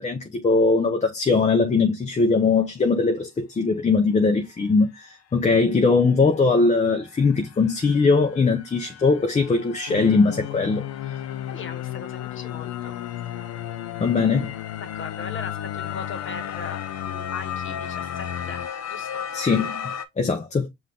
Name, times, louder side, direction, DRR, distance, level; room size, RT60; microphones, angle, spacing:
voice 1, 0.0-10.8 14.0-14.5 19.3-19.8 20.2-20.7, left 4 dB, 25° left, 0.6 m, -20 dB
sound 1, 5.5-5.6 6.0-20.0, left 8 dB, 55° left, 0.8 m, -37 dB
sound 2, 9.9-18.7, left 13 dB, 85° left, 0.5 m, -34 dB
voice 2, 11.5-13.0 14.8-19.2, left 4 dB, 40° left, 1.2 m, -39 dB
5.7 x 2.6 x 3.5 m
cardioid pair, 90°, 30 cm